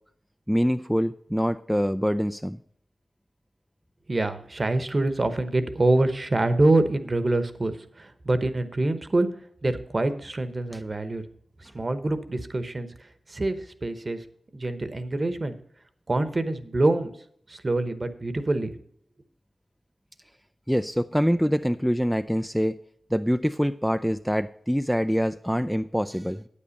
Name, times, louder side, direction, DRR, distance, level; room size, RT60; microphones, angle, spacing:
voice 1, 0.5-2.6 20.7-22.8 23.1-26.5, equal, ahead, 9 dB, 0.3 m, -25 dB
voice 2, 4.1-9.3 9.6-11.2 11.7-12.9 13.3-14.2 14.5-15.5 16.1-17.1 17.5-18.7, right 2 dB, 35° right, 11 dB, 1.0 m, -25 dB
9.3 x 8.6 x 5.2 m, 0.65 s
wide cardioid pair, 75°, 0 cm